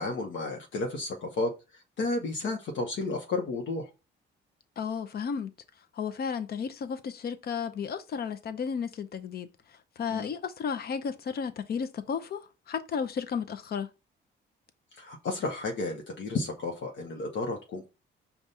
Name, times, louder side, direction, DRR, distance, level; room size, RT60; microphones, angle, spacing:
voice 1, 0.0-1.5 2.0-3.9 10.1-10.3 15.0-17.9, left 3 dB, 70° left, 1.0 m, -32 dB
voice 2, 4.8-5.5 5.9-9.5 10.0-13.9, left 6 dB, 50° left, 0.6 m, -33 dB
5.2 x 2.4 x 4.0 m
cardioid pair, 90°, 20 cm